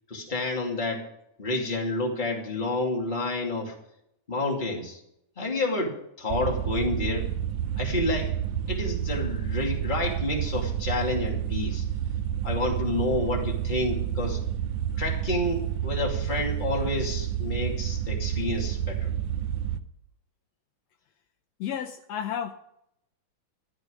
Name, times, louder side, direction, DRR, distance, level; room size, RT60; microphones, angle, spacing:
voice 1, 0.1-1.1 1.4-3.8 4.3-5.0 5.4-7.3 7.8-8.4 8.7-11.8 12.4-14.4 15.0-19.1, left 2 dB, 15° left, -1 dB, 2.1 m, -29 dB
sound 1, 6.3-19.8, right 10 dB, 75° right, 2.1 m, -29 dB
voice 2, 21.6-22.5, left 9 dB, 80° left, 6 dB, 1.5 m, -32 dB
13.5 x 9.9 x 5.0 m, 0.78 s
omnidirectional pair, 3.7 m